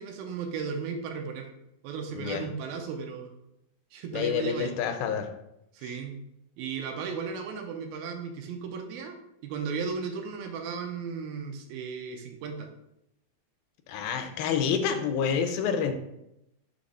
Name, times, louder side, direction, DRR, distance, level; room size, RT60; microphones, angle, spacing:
voice 1, 0.0-1.5 1.8-3.3 3.9-4.7 5.7-6.2 6.6-9.2 9.4-12.7, right 5 dB, 85° right, 4 dB, 2.6 m, -35 dB
voice 2, 2.1-2.4 4.1-5.3 13.9-15.9, left 7 dB, 80° left, 6 dB, 2.4 m, -28 dB
6.4 x 3.1 x 5.3 m, 0.82 s
omnidirectional pair, 4.2 m